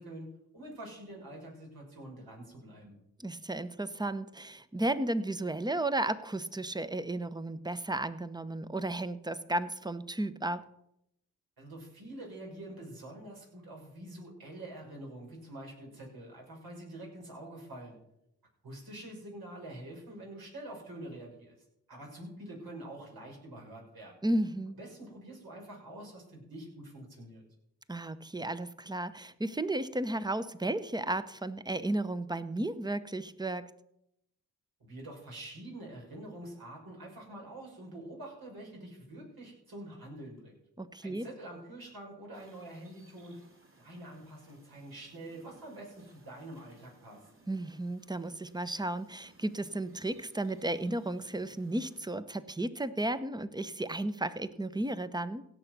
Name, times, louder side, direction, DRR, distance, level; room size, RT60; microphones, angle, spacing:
voice 1, 0.0-3.0 11.6-18.0 18.6-21.6 21.9-24.2 24.8-27.4 34.8-40.6 41.0-43.4 43.8-47.3, right 1 dB, 65° right, -2 dB, 6.2 m, -46 dB
voice 2, 3.2-10.6 24.2-24.8 27.9-33.7 40.8-41.3 47.5-55.5, right 1 dB, 10° right, 14 dB, 1.0 m, -34 dB
sound 1, 42.3-52.0, right 1 dB, 35° right, 4.4 m, -62 dB
17.0 x 6.9 x 6.1 m, 0.80 s
supercardioid pair, 45°, 38 cm